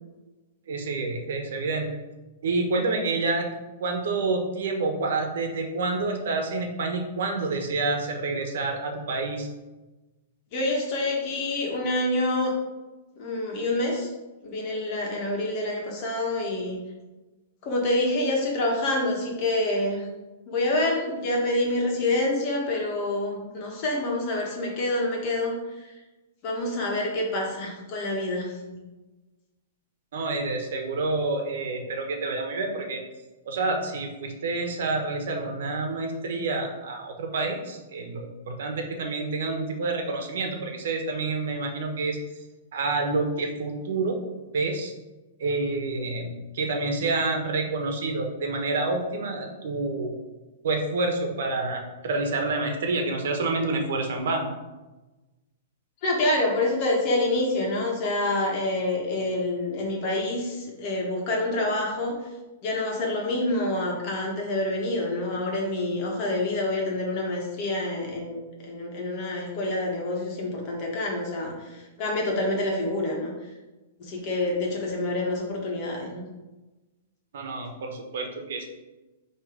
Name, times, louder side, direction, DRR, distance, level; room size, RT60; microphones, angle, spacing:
voice 1, 0.7-1.9 2.4-3.5 3.8-9.5 30.1-33.0 33.4-42.2 42.7-44.2 44.5-44.9 45.4-50.1 50.6-54.5 77.3-78.6, right 3 dB, 70° right, 3 dB, 1.2 m, -28 dB
voice 2, 10.5-12.5 13.1-14.1 14.4-16.8 17.6-20.1 20.5-25.5 25.8-25.9 26.4-28.8 56.0-62.2 62.6-73.3 74.0-76.2, left 2 dB, 35° left, -1 dB, 1.6 m, -27 dB
6.4 x 3.2 x 5.1 m, 1.1 s
hypercardioid pair, 165°, 0 cm